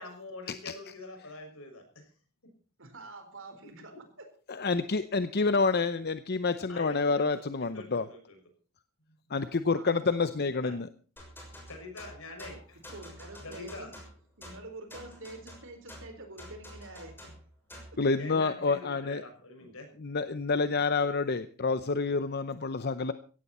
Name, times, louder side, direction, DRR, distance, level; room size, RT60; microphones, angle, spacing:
voice 1, 0.0-2.1 6.7-8.4 9.1-9.2 10.6-10.8 11.7-12.8 13.4-13.9 18.1-19.9, left 2 dB, 65° left, 4 dB, 6.2 m, -45 dB
voice 2, 2.8-4.2 9.7-10.2 12.9-14.0 14.4-17.3 17.9-18.0, right 2 dB, 60° right, 6 dB, 4.3 m, -47 dB
voice 3, 4.5-8.1 9.3-10.9 18.0-19.2 20.0-23.1, left 4 dB, 45° left, 12 dB, 0.7 m, -28 dB
sound 1, 11.2-18.0, equal, 10° left, 6.2 m, -48 dB
17.0 x 15.0 x 4.3 m, 0.38 s
head